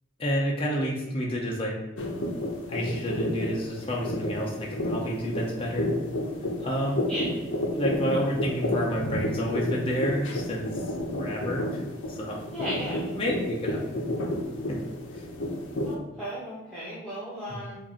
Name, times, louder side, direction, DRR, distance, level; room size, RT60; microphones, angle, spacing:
voice 1, 0.2-1.8 2.7-5.9 6.6-7.0 7.7-10.8 11.2-11.8 12.1-12.4 13.1-14.1 14.7-14.8 15.1-15.2 17.5-17.6, equal, 30° left, -2 dB, 0.6 m, -30 dB
sound 1, 2.0-16.0, left 1 dB, 85° left, 0.9 m, -31 dB
voice 2, 12.5-13.1 15.8-17.8, equal, 5° left, -10 dB, 1.1 m, -35 dB
4.8 x 2.6 x 4.2 m, 1.1 s
head